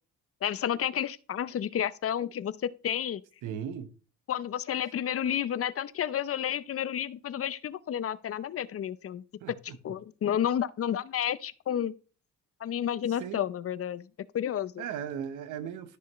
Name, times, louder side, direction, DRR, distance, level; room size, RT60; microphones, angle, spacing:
voice 1, 0.4-3.2 4.3-9.2 9.6-11.9 12.6-14.1 14.3-14.8, left 10 dB, 50° left, 0.7 m, -31 dB
voice 2, 3.4-3.9 9.4-9.8 13.2-13.4 14.8-16.0, right 8 dB, 90° right, 1.2 m, -37 dB
13.0 x 6.3 x 3.1 m
cardioid pair, 90°, 30 cm